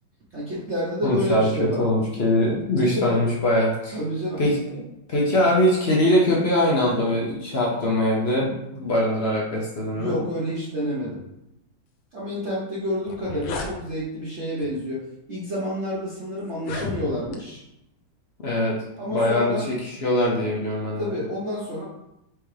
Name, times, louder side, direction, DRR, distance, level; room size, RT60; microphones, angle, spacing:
voice 1, 0.3-1.8 2.9-3.3 3.9-4.5 9.9-11.2 12.1-17.6 19.0-19.7 21.0-21.8, equal, 45° right, -8 dB, 1.0 m, -29 dB
voice 2, 1.0-4.0 4.4-4.5 5.1-10.2 18.4-18.8 19.1-21.1, left 1 dB, 55° left, -3 dB, 0.7 m, -22 dB
sound 1, 12.6-12.7 13.0-13.7 14.6-14.8 15.5-15.6 16.5-17.4, left 4 dB, 85° left, 1.4 m, -33 dB
4.8 x 3.5 x 3.2 m, 0.85 s
omnidirectional pair, 2.1 m